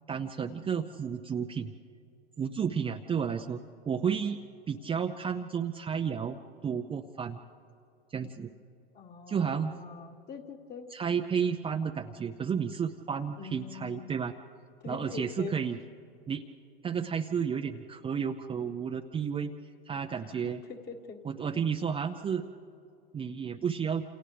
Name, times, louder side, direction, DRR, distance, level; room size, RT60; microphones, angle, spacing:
voice 1, 0.1-1.7 2.4-3.6 3.9-7.4 8.1-8.5 9.3-9.7 10.9-14.3 14.9-15.8 16.3-16.4 16.8-19.5 19.9-20.6 21.2-22.4 23.1-24.0, right 7 dB, 15° right, 5 dB, 0.6 m, -32 dB
voice 2, 8.9-10.9 13.4-14.0 14.8-15.5 20.2-20.4 20.8-21.2, left 5 dB, 30° left, 3 dB, 1.8 m, -43 dB
28.5 x 28.5 x 3.4 m, 2.5 s
hypercardioid pair, 95°, 31 cm